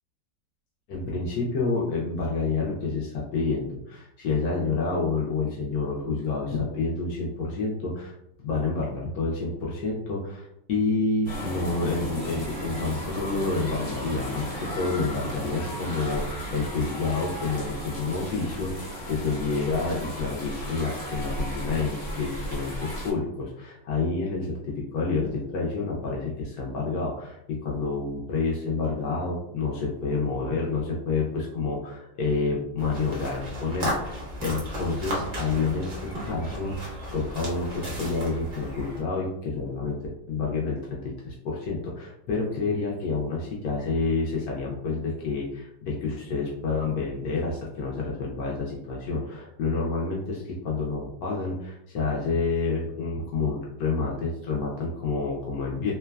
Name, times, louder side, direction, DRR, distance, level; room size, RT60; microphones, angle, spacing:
voice 1, 0.9-8.1 8.4-40.0 40.3-55.9, left 3 dB, 70° left, -3 dB, 0.9 m, -29 dB
sound 1, 11.2-23.1, equal, 45° left, 0.8 m, -34 dB
sound 2, 32.8-39.0, equal, 85° right, 0.3 m, -35 dB
3.0 x 2.1 x 2.3 m, 0.80 s
omnidirectional pair, 1.9 m